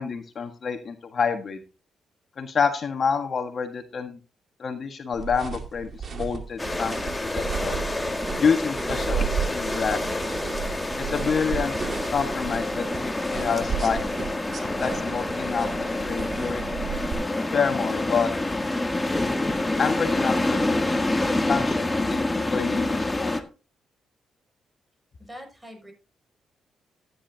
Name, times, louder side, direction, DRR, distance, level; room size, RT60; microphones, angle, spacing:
voice 1, 0.0-1.6 2.4-4.2 4.6-7.0 7.2-7.8 8.4-10.2 11.0-11.7 12.1-12.9 13.3-14.0 14.6-16.8 17.5-18.3 19.8-21.0 21.5-23.4, left 6 dB, 55° left, 6 dB, 1.6 m, -28 dB
sound 1, 5.1-17.1, right 7 dB, 55° right, 2.3 m, -34 dB
sound 2, 6.6-23.4, left 2 dB, 15° left, 1.9 m, -27 dB
voice 2, 25.2-25.9, equal, 15° right, 5 dB, 6.4 m, -43 dB
14.5 x 9.9 x 2.8 m, 0.32 s
supercardioid pair, 60°, 0 cm